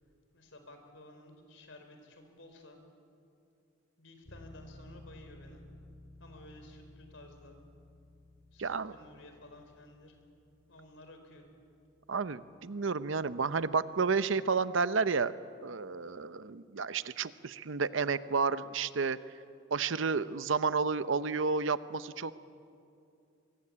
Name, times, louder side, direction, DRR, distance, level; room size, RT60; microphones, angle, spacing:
voice 1, 0.3-2.8 4.0-5.6 6.2-7.6 8.5-10.2 10.7-11.5, left 1 dB, 70° left, 5 dB, 4.3 m, -54 dB
Bass guitar, 4.3-14.0, left 1 dB, 40° left, 2.6 m, -56 dB
voice 2, 8.6-8.9 12.1-15.3 15.6-19.2 19.7-22.3, right 5 dB, 75° right, 14 dB, 0.7 m, -31 dB
24.5 x 22.5 x 8.6 m, 2.5 s
head